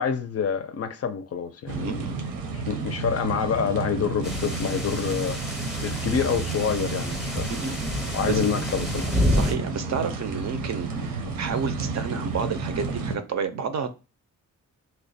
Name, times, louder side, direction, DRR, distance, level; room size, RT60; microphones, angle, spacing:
voice 1, 0.0-2.0 2.5-5.4 5.8-7.7 8.1-9.1, left 7 dB, 45° left, 0.4 m, -27 dB
sound 1, 1.7-13.2, right 4 dB, 85° right, 0.8 m, -31 dB
voice 2, 1.8-2.2 7.5-7.8 8.3-8.4 9.3-13.9, right 6 dB, 55° right, 0.5 m, -30 dB
sound 2, 4.2-9.5, left 1 dB, ahead, 0.6 m, -29 dB
3.0 x 2.1 x 4.0 m
wide cardioid pair, 150°, 34 cm